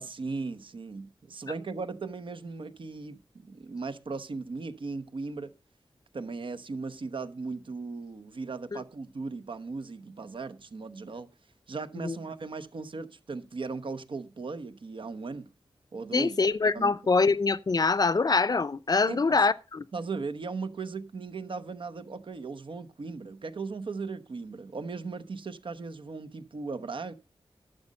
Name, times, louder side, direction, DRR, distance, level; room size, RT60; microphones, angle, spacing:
voice 1, 0.0-5.5 6.1-11.3 11.7-15.5 15.9-16.4 16.7-16.9 19.1-19.5 19.9-27.1, right 4 dB, 65° right, 0.9 m, -37 dB
voice 2, 16.1-19.8, left 4 dB, 45° left, 0.5 m, -24 dB
11.5 x 6.5 x 5.3 m
wide cardioid pair, 85°, 9 cm